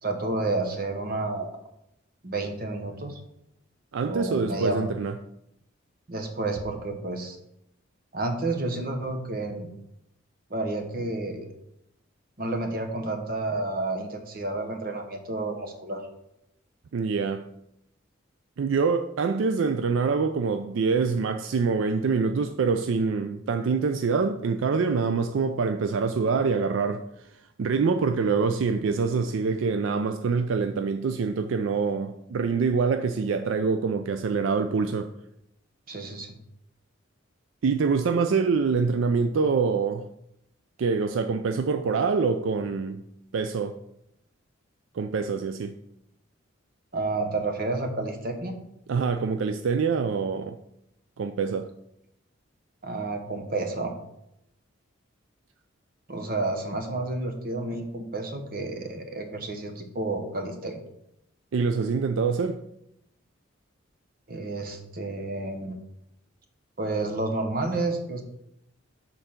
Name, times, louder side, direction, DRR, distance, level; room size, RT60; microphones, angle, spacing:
voice 1, 0.0-1.6 2.2-3.2 4.1-4.9 6.1-7.4 8.1-9.7 10.5-11.5 12.4-16.0 35.9-36.3 46.9-48.6 52.8-53.9 56.1-60.8 64.3-65.8 66.8-68.2, right 2 dB, 45° right, 1.0 m, -30 dB
voice 2, 3.9-5.1 16.9-17.5 18.6-27.3 27.6-35.1 37.6-40.1 40.8-43.0 43.3-43.8 44.9-45.7 48.9-50.6 51.2-51.7 61.5-62.6, right 5 dB, 75° right, 0.4 m, -25 dB
6.6 x 4.0 x 5.8 m
head